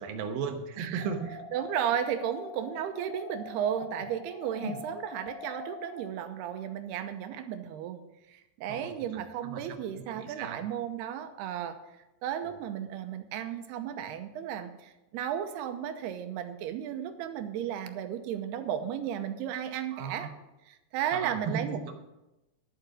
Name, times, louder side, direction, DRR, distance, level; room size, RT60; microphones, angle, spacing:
voice 1, 0.0-1.4 4.6-4.8 8.7-8.9 9.4-10.6 19.9-20.3 21.1-22.0, right 6 dB, 70° right, 6 dB, 2.6 m, -36 dB
sound 1, 1.0-6.0, left 4 dB, 80° left, 3.6 m, -43 dB
voice 2, 1.5-8.0 8.3-11.8 12.2-20.3 20.7-22.0, right 9 dB, 90° right, 8 dB, 2.9 m, -34 dB
11.5 x 7.4 x 6.4 m, 0.97 s
omnidirectional pair, 4.6 m